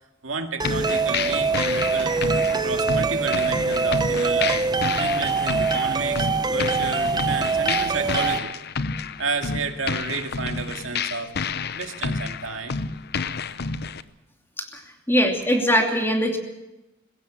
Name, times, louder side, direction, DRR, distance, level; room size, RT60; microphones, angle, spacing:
voice 1, 0.2-2.1 2.5-4.7 5.0-8.5 9.2-11.4 11.7-12.8, right 4 dB, 75° right, 4 dB, 2.1 m, -31 dB
sound 1, 0.6-14.0, left 5 dB, 55° left, 0.8 m, -30 dB
sound 2, 0.6-8.4, right 4 dB, 20° right, 0.6 m, -24 dB
voice 2, 15.1-16.4, equal, 10° left, 3 dB, 2.7 m, -21 dB
21.5 x 16.5 x 7.4 m, 0.99 s
head